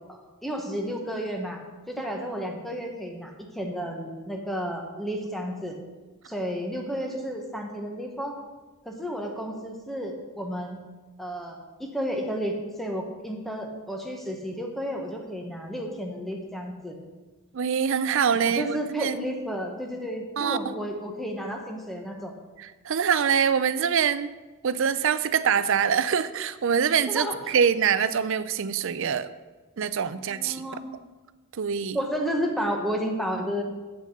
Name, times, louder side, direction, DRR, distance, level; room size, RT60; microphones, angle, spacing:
voice 1, 0.1-1.6 1.9-5.8 6.3-8.3 8.8-10.8 11.2-16.9 18.4-22.4 27.1-27.6 30.1-30.8 31.9-33.6, equal, ahead, 2 dB, 1.1 m, -32 dB
voice 2, 17.5-19.3 20.4-20.7 22.6-24.3 24.6-29.3 29.8-30.6 31.6-32.0, right 7 dB, 60° right, 15 dB, 0.4 m, -24 dB
8.1 x 6.4 x 6.5 m, 1.3 s
head